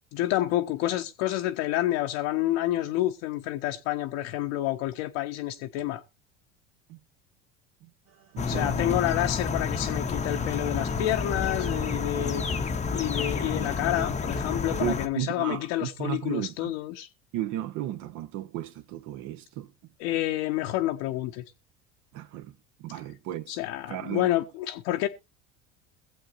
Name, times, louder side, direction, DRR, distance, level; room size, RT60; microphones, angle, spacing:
voice 1, 0.1-6.0 8.5-12.4 12.9-17.1 20.0-21.4 23.5-25.1, left 14 dB, 55° left, 0.9 m, -29 dB
sound 1, 8.1-14.9, right 6 dB, 35° right, 2.1 m, -45 dB
voice 2, 8.3-9.0 14.8-16.7 17.3-19.7 22.1-22.5 22.8-23.6 23.9-24.3, right 12 dB, 50° right, 1.1 m, -34 dB
sound 2, 8.4-15.1, left 5 dB, 20° left, 0.9 m, -30 dB
21.5 x 7.8 x 2.5 m
figure-of-eight pair, 70°, 36 cm